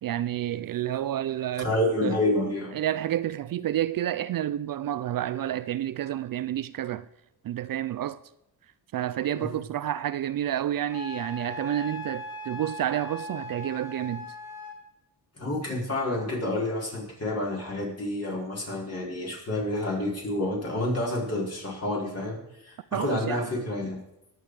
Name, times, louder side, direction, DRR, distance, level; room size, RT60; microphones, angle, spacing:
voice 1, 0.0-1.7 2.0-2.2 2.7-7.1 7.4-8.2 8.9-14.3 22.9-23.5, right 12 dB, 55° right, 0.5 m, -29 dB
voice 2, 1.6-2.7 9.4-9.5 15.4-24.0, left 1 dB, 35° left, 4.6 m, -29 dB
Wind instrument woodwind instrument, 10.9-14.8, left 1 dB, 70° left, 5.4 m, -38 dB
19.5 x 7.7 x 4.9 m
cardioid pair, 100°, 40 cm